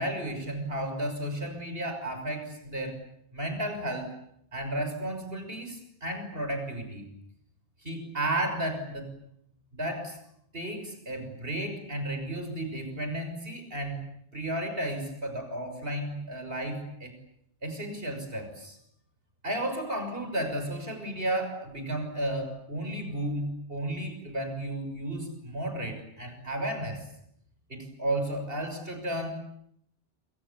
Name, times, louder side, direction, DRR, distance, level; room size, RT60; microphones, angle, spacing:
voice 1, 0.0-3.0 3.3-4.1 4.5-7.1 7.8-9.1 9.7-10.2 10.5-14.0 14.3-17.1 17.6-18.8 19.4-27.1 27.7-29.3, right 1 dB, 65° right, 6 dB, 6.7 m, -33 dB
27.0 x 25.5 x 8.6 m, 0.72 s
omnidirectional pair, 1.1 m